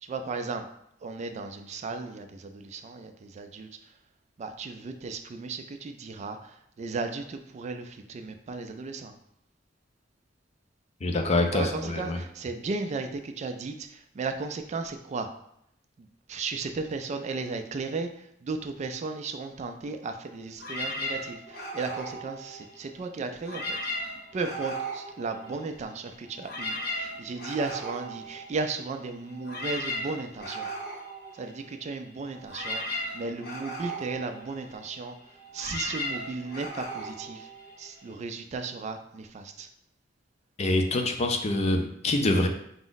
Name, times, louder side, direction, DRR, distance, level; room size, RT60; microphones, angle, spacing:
voice 1, 0.0-0.7 1.0-3.9 4.4-9.1 11.4-15.3 16.0-23.8 24.3-30.7 31.3-35.1 35.5-37.5 37.8-39.7, right 4 dB, 40° right, 7 dB, 0.3 m, -35 dB
voice 2, 11.0-12.2 40.6-42.5, left 2 dB, 35° left, 5 dB, 0.4 m, -25 dB
sound 1, 20.6-23.0 23.4-25.9 26.2-38.1, equal, 55° left, 0.8 m, -37 dB
4.8 x 2.0 x 3.9 m, 0.74 s
head